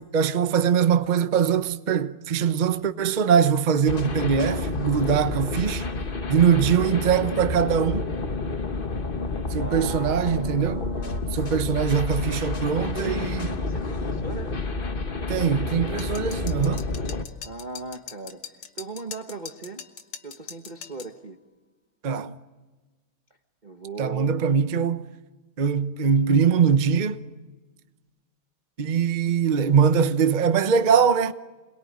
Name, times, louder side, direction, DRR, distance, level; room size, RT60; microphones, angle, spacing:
voice 1, 0.0-5.9 6.3-8.1 9.5-10.8 11.3-13.5 15.3-16.9 22.0-22.3 24.0-25.1 25.6-27.2 28.8-31.3, right 7 dB, 60° right, 0.4 m, -22 dB
sound 1, 3.9-17.2, left 3 dB, 30° left, 1.1 m, -29 dB
voice 2, 6.6-7.0 9.6-11.4 12.8-14.5 17.4-19.8 20.2-21.4 23.6-24.4, right 3 dB, 25° right, 1.2 m, -37 dB
sound 2, 16.0-21.1, left 8 dB, 70° left, 2.3 m, -41 dB
28.0 x 21.5 x 9.7 m
omnidirectional pair, 2.4 m